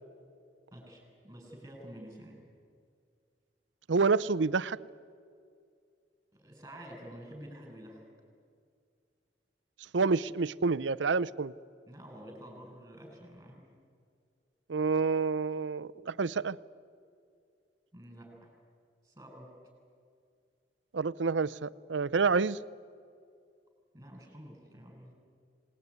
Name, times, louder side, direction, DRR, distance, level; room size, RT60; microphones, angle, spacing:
voice 1, 0.7-2.4 6.3-8.1 11.9-13.7 17.9-18.5 19.0-19.5 23.9-25.2, equal, 15° right, 2 dB, 7.1 m, -49 dB
voice 2, 3.9-4.8 9.9-11.5 14.7-16.6 20.9-22.6, right 4 dB, 90° right, 17 dB, 0.6 m, -28 dB
26.5 x 20.0 x 9.7 m, 2.3 s
head